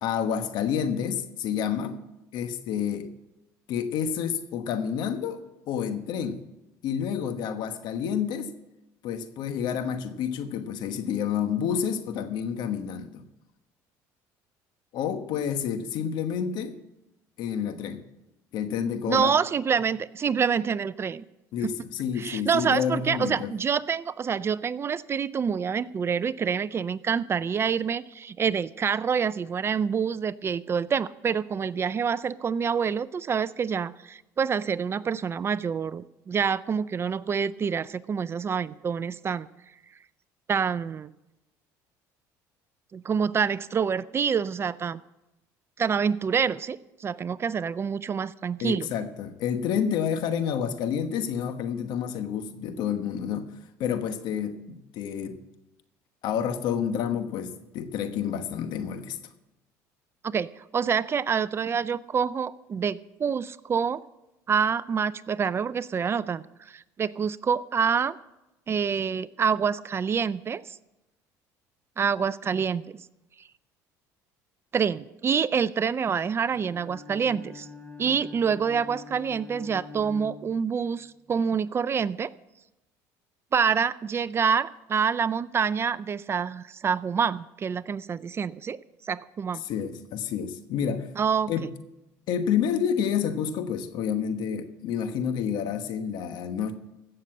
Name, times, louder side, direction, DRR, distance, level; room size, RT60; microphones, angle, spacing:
voice 1, 0.0-2.0 2.3-3.1 3.7-6.5 6.8-8.5 9.0-13.2 14.9-16.8 17.4-18.0 18.5-19.4 21.5-23.5 48.6-53.5 53.8-55.4 56.2-59.2 89.6-91.1 91.5-91.7 92.3-96.7, left 8 dB, 70° left, 9 dB, 1.2 m, -29 dB
voice 2, 19.1-21.2 21.6-21.7 22.2-39.5 40.5-41.1 42.9-45.0 45.8-48.9 60.2-64.0 64.5-68.2 68.7-70.6 72.0-73.0 74.7-77.7 78.0-82.3 83.5-88.8 89.1-89.6 91.2-91.5, right 6 dB, 30° right, 18 dB, 0.4 m, -27 dB
Bowed string instrument, 76.5-81.1, left 5 dB, 15° left, 3.4 m, -45 dB
15.5 x 6.7 x 7.7 m, 0.95 s
supercardioid pair, 95°, 8 cm